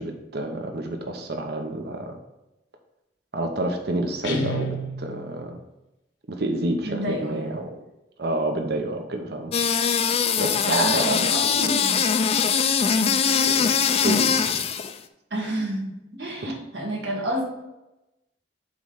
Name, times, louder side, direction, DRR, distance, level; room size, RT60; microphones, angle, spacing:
voice 1, 0.0-2.1 3.3-5.6 6.3-7.8 8.2-9.5 10.4-11.7 13.5-13.7 14.0-14.6, right 1 dB, 65° right, 4 dB, 0.9 m, -29 dB
Guitar, 4.2-5.5, equal, 80° left, 1.1 m, -30 dB
voice 2, 6.8-7.6 10.6-12.0 13.0-13.2 15.3-17.4, right 1 dB, 85° right, -2 dB, 1.9 m, -29 dB
sound 1, 9.5-14.9, left 6 dB, 35° left, 0.4 m, -22 dB
7.8 x 3.2 x 5.3 m, 0.94 s
head